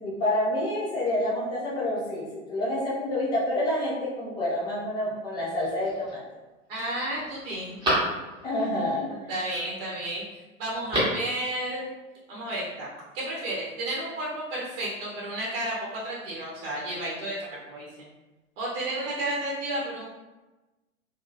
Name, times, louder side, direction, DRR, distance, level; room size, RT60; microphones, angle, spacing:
voice 1, 0.0-6.2 8.4-9.1, left 1 dB, 10° left, -6 dB, 0.4 m, -28 dB
Telephone, 5.5-6.1 6.6-6.7 7.1-8.6 10.7-11.3 11.6-11.7, right 1 dB, 10° right, 0.9 m, -30 dB
voice 2, 6.7-7.7 9.1-10.2 10.6-11.8 12.3-12.9 13.1-17.8 18.6-20.1, right 1 dB, 40° right, -5 dB, 0.8 m, -32 dB
2.8 x 2.6 x 2.5 m, 1.1 s
figure-of-eight pair, 95°, 41 cm